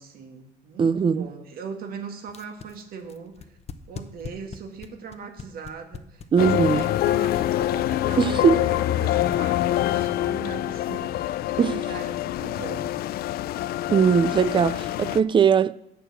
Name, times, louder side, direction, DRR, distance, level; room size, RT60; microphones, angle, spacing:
voice 1, 0.0-3.5 3.9-11.2 11.9-13.0, right 5 dB, 60° right, 1.9 m, -40 dB
voice 2, 0.8-1.3 6.3-6.8 8.2-8.7 11.6-11.9 13.9-15.7, right 6 dB, 30° right, 0.4 m, -20 dB
sound 1, 2.3-10.2, left 6 dB, 40° left, 0.7 m, -40 dB
sound 2, 6.4-15.2, left 13 dB, 65° left, 0.4 m, -25 dB
8.1 x 6.7 x 7.5 m
cardioid pair, 110°, 17 cm